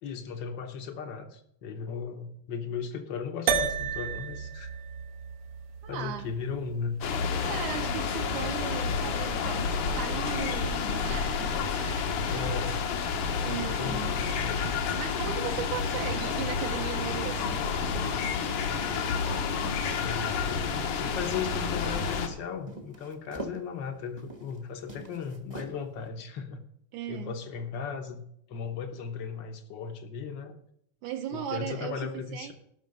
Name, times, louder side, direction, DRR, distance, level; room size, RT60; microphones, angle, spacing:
voice 1, 0.0-4.7 5.9-7.0 12.3-12.8 13.5-14.7 20.0-26.6 27.1-30.6 31.3-32.5, left 6 dB, 70° left, 6 dB, 1.0 m, -37 dB
sound 1, 3.5-8.0, right 6 dB, 65° right, 1.5 m, -33 dB
voice 2, 5.8-6.3 7.4-12.4 13.4-14.2 15.0-17.6 26.9-27.3 31.0-32.5, right 10 dB, 80° right, 3 dB, 2.3 m, -37 dB
sound 2, 7.0-22.3, left 5 dB, 90° left, 2.7 m, -30 dB
sound 3, 17.4-19.2 19.6-20.6 20.9-21.0 21.2-22.2 22.7-24.6 24.8-26.0, right 2 dB, 30° right, 0.6 m, -44 dB
17.5 x 6.4 x 5.2 m, 0.72 s
omnidirectional pair, 3.5 m